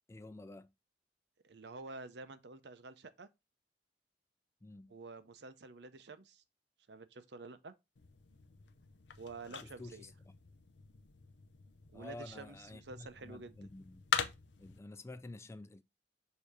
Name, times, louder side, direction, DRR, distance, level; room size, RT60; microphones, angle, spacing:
voice 1, 0.1-0.7 4.6-5.0 9.5-10.3 11.9-14.0 14.6-15.8, left 2 dB, 15° left, 0.3 m, -50 dB
voice 2, 1.4-3.3 4.9-6.4 6.9-7.7 9.2-10.1 11.9-13.6, right 3 dB, 70° right, 0.7 m, -49 dB
sound 1, 8.0-14.8, left 7 dB, 85° left, 0.6 m, -43 dB
6.8 x 2.9 x 4.9 m
head